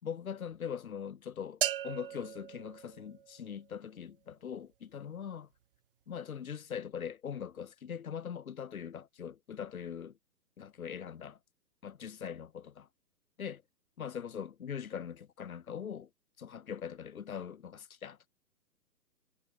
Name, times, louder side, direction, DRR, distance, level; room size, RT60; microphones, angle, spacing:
voice 1, 0.0-5.5 6.1-10.2 10.6-11.4 11.8-12.9 13.4-13.6 14.0-16.1 16.4-18.3, left 8 dB, 55° left, 4.6 m, -41 dB
sound 1, 1.6-3.6, right 11 dB, 35° right, 0.9 m, -37 dB
figure-of-eight pair, 130°, 49 cm